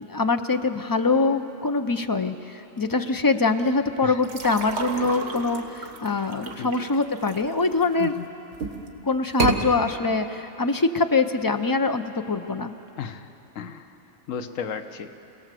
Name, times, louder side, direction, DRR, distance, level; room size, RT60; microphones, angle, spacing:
voice 1, 0.0-8.2 9.1-12.7, left 3 dB, 25° left, 8 dB, 0.4 m, -24 dB
sound 1, 4.2-8.0 8.5-8.9 9.3-9.6, right 4 dB, 65° right, 1.7 m, -30 dB
voice 2, 13.0-13.3 13.5-13.8 14.3-15.1, left 7 dB, 80° left, 9 dB, 1.2 m, -34 dB
25.0 x 17.5 x 7.6 m, 3.0 s
omnidirectional pair, 1.3 m